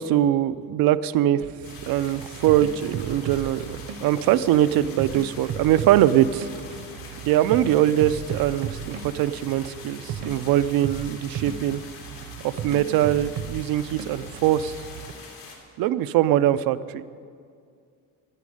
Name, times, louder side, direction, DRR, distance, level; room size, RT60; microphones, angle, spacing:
voice 1, 0.0-1.4 1.8-6.5 7.2-11.8 12.4-14.8 15.8-17.0, right 12 dB, 90° right, 14 dB, 0.6 m, -22 dB
sound 1, 1.4-15.1, right 7 dB, 65° right, 0.9 m, -36 dB
sound 2, 1.6-15.6, left 5 dB, 90° left, 3.0 m, -44 dB
13.5 x 8.4 x 9.9 m, 2.3 s
cardioid pair, 170°, 34 cm